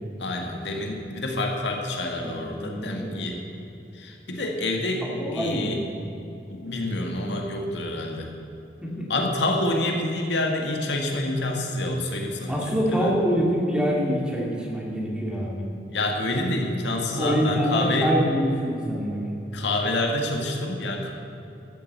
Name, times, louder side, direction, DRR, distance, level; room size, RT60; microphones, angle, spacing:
voice 1, 0.2-3.4 3.9-5.1 5.3-5.8 6.5-8.3 9.1-13.2 15.9-18.1 19.5-21.1, left 2 dB, 80° left, 1 dB, 1.8 m, -27 dB
voice 2, 2.2-3.2 5.0-5.9 8.8-9.0 12.5-15.7 17.2-19.3, equal, 5° right, -3 dB, 2.3 m, -26 dB
13.0 x 7.8 x 8.2 m, 2.9 s
head